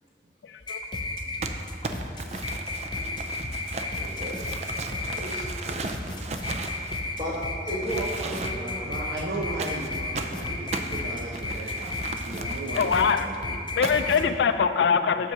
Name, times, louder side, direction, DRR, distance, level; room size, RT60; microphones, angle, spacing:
voice 1, 0.4-0.8 12.7-13.3 13.8-15.3, left 6 dB, 80° left, 10 dB, 0.4 m, -23 dB
sound 1, 0.6-14.2, left 2 dB, 25° left, 0.5 m, -33 dB
Crumpling crinkling, 1.4-7.4 7.8-8.8 9.6-13.1 13.8-14.2, right 3 dB, 35° right, 0.4 m, -36 dB
voice 2, 1.9-2.2 8.5-13.5 14.0-14.4, right 2 dB, 70° right, -3 dB, 0.9 m, -36 dB
voice 3, 2.8-3.1 3.9-4.4 4.9-5.8 7.1-7.4 7.6-9.0, right 1 dB, 20° right, -7 dB, 1.5 m, -35 dB
7.5 x 6.1 x 5.6 m, 2.4 s
head